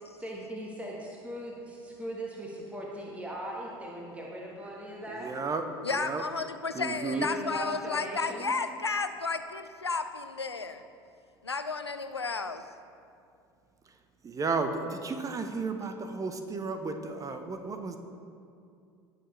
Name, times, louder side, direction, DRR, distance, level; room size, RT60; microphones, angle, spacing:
voice 1, 0.2-5.3 7.1-8.5, right 1 dB, 10° right, -2 dB, 1.5 m, -39 dB
voice 2, 5.2-5.6 6.0-6.2 6.7-7.3 14.2-18.0, right 4 dB, 25° right, 7 dB, 0.8 m, -33 dB
voice 3, 5.8-10.8 11.4-12.6, left 4 dB, 90° left, 9 dB, 0.5 m, -32 dB
18.5 x 6.6 x 3.2 m, 2.5 s
figure-of-eight pair, 70°, 13 cm